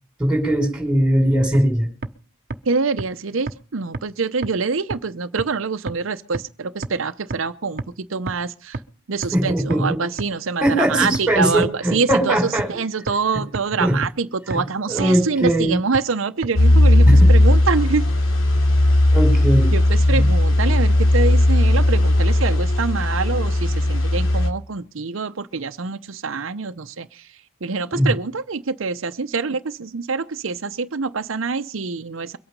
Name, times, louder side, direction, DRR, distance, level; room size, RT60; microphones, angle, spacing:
voice 1, 0.2-1.9 9.3-9.9 10.6-12.7 13.8-14.0 14.5-14.6 14.9-15.8 17.1-17.3 19.1-19.7 20.1-20.3 27.9-28.1, right 1 dB, 5° right, 5.7 m, -19 dB
sound 1, 1.5-1.6 2.0-2.1 2.5-2.6 3.0-3.1 3.5-3.6 3.9-4.0 4.4-4.5 4.9-5.0 5.4-5.5 5.9-6.0 6.3-6.4 6.8-6.9 7.3-7.4 7.8-7.9 8.3-8.4 8.7-8.8 9.2-9.3 9.7-9.8 10.2-10.3 10.7-10.8 11.1-11.2 11.6-11.7 12.1-12.2 12.6-12.7 13.1-13.2 13.5-13.6 14.0-14.1 14.5-14.6 15.0-15.1 15.5-15.6 15.9-16.0 16.4-16.5, right 2 dB, 50° right, 1.0 m, -27 dB
voice 2, 2.7-8.8 9.1-12.4 12.7-18.1 19.7-27.3 27.6-32.4, right 4 dB, 80° right, 0.7 m, -25 dB
sound 2, 16.6-24.5, left 1 dB, 80° left, 3.0 m, -16 dB
23.0 x 8.8 x 5.4 m
head